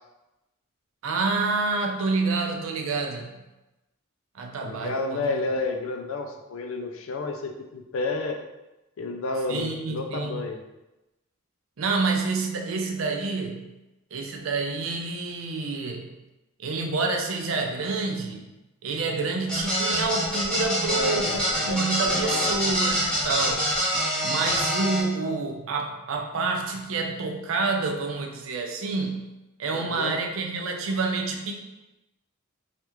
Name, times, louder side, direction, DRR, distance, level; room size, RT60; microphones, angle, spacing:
voice 1, 1.0-3.3 4.3-5.3 9.5-10.4 11.8-13.7 14.1-16.1 16.6-18.5 18.8-23.7 24.2-29.2 29.6-31.6, right 3 dB, 65° right, 3 dB, 0.5 m, -28 dB
voice 2, 4.6-8.4 9.0-10.6 20.9-22.5 29.7-30.2, left 3 dB, 70° left, 4 dB, 0.4 m, -31 dB
sound 1, 19.5-25.0, equal, 5° left, 0.6 m, -25 dB
3.3 x 2.4 x 3.0 m, 1.0 s
head